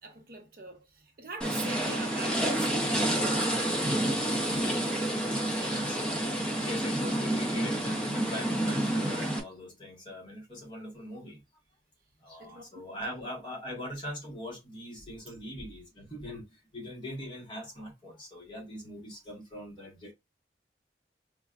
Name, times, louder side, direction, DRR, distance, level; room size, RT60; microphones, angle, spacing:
voice 1, 0.0-3.5 3.8-5.9 12.4-12.6, right 2 dB, 55° right, 0.8 m, -44 dB
sound 1, 1.4-9.4, right 1 dB, 5° left, 0.6 m, -29 dB
voice 2, 5.1-11.4 12.2-20.1, left 1 dB, 30° left, 1.2 m, -42 dB
5.1 x 2.2 x 2.4 m
head